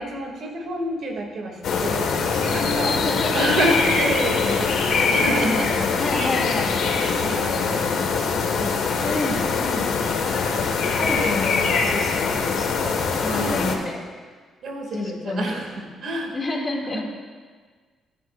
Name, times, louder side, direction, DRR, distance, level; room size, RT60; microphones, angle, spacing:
voice 1, 0.0-3.0 3.3-6.4 6.8-9.4 9.8-9.9 11.0-11.4 13.3-13.8 14.6-16.3 16.9-17.0, right 1 dB, 65° right, 1 dB, 2.4 m, -29 dB
sound 1, 1.6-13.8, left 5 dB, 75° left, 1.7 m, -23 dB
voice 2, 2.8-3.5 3.8-4.0 6.0-6.7 9.0-9.9 11.0-14.1 14.9-15.6 16.3-17.0, left 2 dB, 30° left, -1 dB, 2.5 m, -29 dB
24.5 x 9.2 x 2.6 m, 1.5 s
cardioid pair, 90°, 0 cm